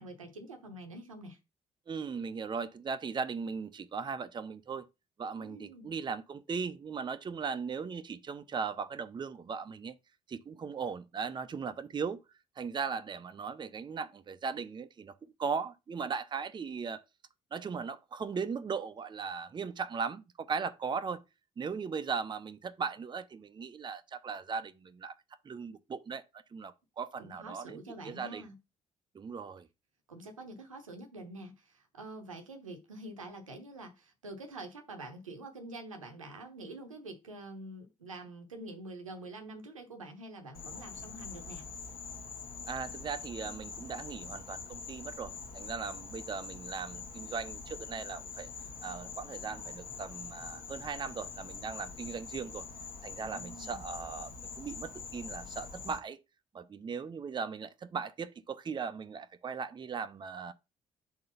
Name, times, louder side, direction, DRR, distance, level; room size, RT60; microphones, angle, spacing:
voice 1, 0.0-1.4 5.4-5.9 27.2-28.6 30.1-41.7 53.2-53.9, right 2 dB, 85° right, 0.9 m, -46 dB
voice 2, 1.9-4.9 5.2-9.9 10.3-12.2 12.6-17.0 17.5-21.2 21.6-25.1 25.4-26.2 26.5-28.4 29.1-29.7 42.7-48.5 48.8-52.6 53.0-54.3 54.6-56.2 56.5-60.5, right 5 dB, 30° right, 0.6 m, -38 dB
Insect, 40.5-56.0, left 5 dB, 55° left, 1.4 m, -44 dB
4.7 x 3.8 x 5.6 m
figure-of-eight pair, 45°, 17 cm